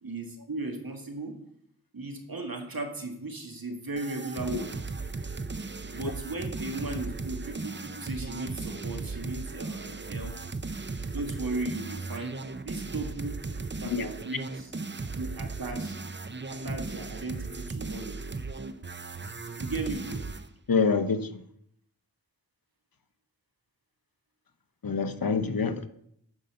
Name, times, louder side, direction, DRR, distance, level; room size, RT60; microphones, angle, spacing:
voice 1, 0.0-1.3 1.9-4.7 5.9-10.4 11.1-12.4 12.6-13.4 13.8-14.7 15.1-16.0 16.5-18.2 19.6-20.2, right 2 dB, 65° right, 1.9 m, -36 dB
sound 1, 4.0-20.5, right 3 dB, 30° right, 0.6 m, -36 dB
voice 2, 20.7-21.4 24.8-25.9, left 5 dB, 65° left, 0.8 m, -26 dB
9.2 x 5.4 x 6.7 m
wide cardioid pair, 50°, 38 cm